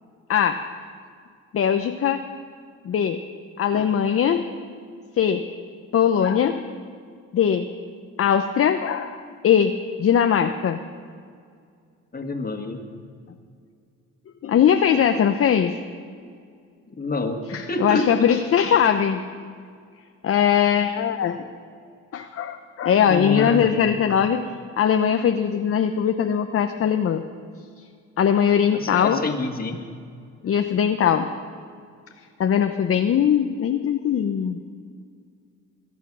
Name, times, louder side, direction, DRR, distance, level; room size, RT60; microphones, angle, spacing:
voice 1, 0.3-0.6 1.5-2.3 2.8-3.2 3.6-4.4 5.2-5.5 5.9-6.6 7.3-7.7 8.2-9.2 9.4-10.8 14.4-15.7 17.5-19.2 20.2-21.4 22.1-24.5 24.8-27.2 28.2-29.2 30.4-31.3 32.4-34.6, left 8 dB, 50° left, 7 dB, 0.8 m, -20 dB
voice 2, 12.1-12.9 16.9-18.3 23.1-23.9 28.7-29.8, left 2 dB, 30° left, 5 dB, 1.9 m, -28 dB
22.5 x 9.2 x 6.2 m, 2.2 s
cardioid pair, 90°, 30 cm